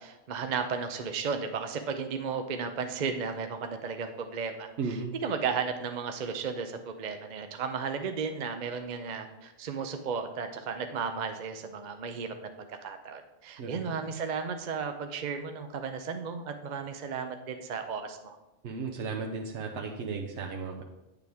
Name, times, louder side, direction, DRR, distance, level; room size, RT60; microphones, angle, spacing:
voice 1, 0.0-18.4, right 5 dB, 50° right, 6 dB, 0.7 m, -34 dB
voice 2, 4.8-5.1 13.6-13.9 18.6-20.8, right 4 dB, 85° right, 1 dB, 1.1 m, -35 dB
9.3 x 6.9 x 3.5 m, 1.0 s
omnidirectional pair, 1.2 m